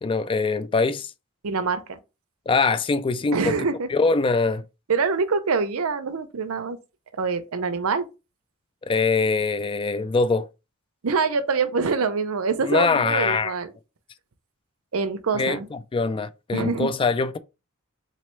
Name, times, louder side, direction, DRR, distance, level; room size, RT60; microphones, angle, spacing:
voice 1, 0.0-1.1 2.5-3.5 3.9-4.6 8.8-10.5 12.7-13.5 15.3-17.4, left 4 dB, 25° left, 0.3 m, -23 dB
voice 2, 1.4-2.0 3.3-3.9 4.9-6.8 7.2-8.1 11.0-13.7 14.9-15.7 16.5-16.9, right 4 dB, 70° right, 0.6 m, -25 dB
4.0 x 3.2 x 3.1 m
head